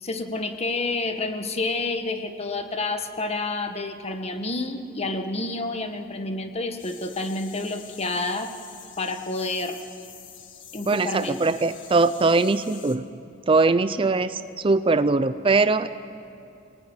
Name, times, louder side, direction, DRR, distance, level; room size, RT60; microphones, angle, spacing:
voice 1, 0.0-8.5 9.0-9.8 10.7-11.4, left 2 dB, 35° left, 6 dB, 1.6 m, -29 dB
sound 1, 6.8-13.0, left 9 dB, 70° left, 1.9 m, -46 dB
voice 2, 10.9-13.1 13.5-15.9, right 3 dB, 30° right, 13 dB, 0.5 m, -21 dB
25.5 x 19.0 x 9.7 m, 2.5 s
head